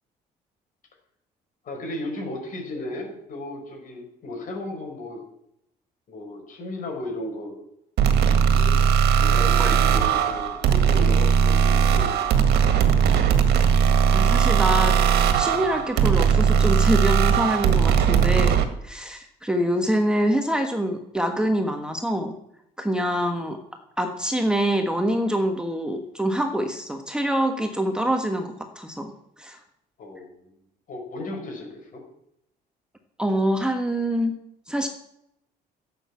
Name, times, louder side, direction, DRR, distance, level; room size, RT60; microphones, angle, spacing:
voice 1, 1.6-5.2 6.1-7.6 8.5-8.9 9.1-12.6 30.0-30.5 30.9-32.1, left 2 dB, 50° left, 2 dB, 5.5 m, -35 dB
sound 1, 8.0-18.7, right 7 dB, 75° right, 1.9 m, -19 dB
voice 2, 9.6-10.2 14.1-14.9 15.4-22.3 22.8-23.6 24.0-29.1 29.4-29.6 33.2-34.3 34.7-34.9, equal, 5° right, 4 dB, 1.4 m, -25 dB
12.0 x 8.1 x 8.5 m, 0.78 s
cardioid pair, 110°, 17 cm